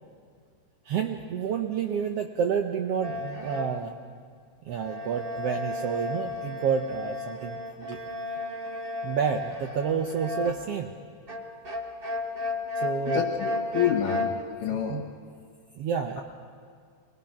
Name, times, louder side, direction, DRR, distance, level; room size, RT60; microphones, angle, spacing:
voice 1, 0.9-3.9 4.6-8.0 9.0-10.9 12.8-13.2 14.6-15.0 15.8-16.2, right 7 dB, 80° right, 4 dB, 1.4 m, -29 dB
sound 1, 3.0-3.9 4.7-10.8 11.3-14.4, left 2 dB, 55° right, 0.6 m, -33 dB
voice 2, 13.1-14.3 14.6-15.0, left 9 dB, 75° left, -2 dB, 3.0 m, -28 dB
26.0 x 20.5 x 5.8 m, 2.1 s
omnidirectional pair, 3.8 m